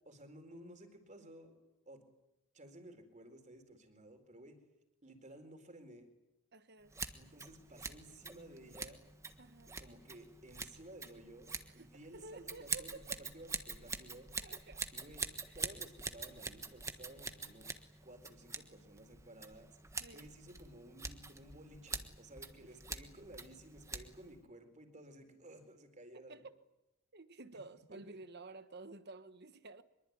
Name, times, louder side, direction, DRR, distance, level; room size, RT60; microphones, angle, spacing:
voice 1, 0.0-1.6 1.9-2.0 2.5-4.6 5.0-6.1 7.1-9.0 9.8-14.3 14.9-15.3 15.5-17.7 18.0-19.8 20.1-26.4 27.9-28.2, right 1 dB, 35° right, 4.2 m, -55 dB
voice 2, 6.5-7.0 9.4-9.7 11.7-13.2 14.4-14.8 15.5-15.9 20.0-20.3 26.3-26.6 27.1-29.8, right 3 dB, 50° right, 1.3 m, -52 dB
Scissors, 6.9-24.4, right 4 dB, 15° right, 1.4 m, -45 dB
24.0 x 22.5 x 9.5 m
head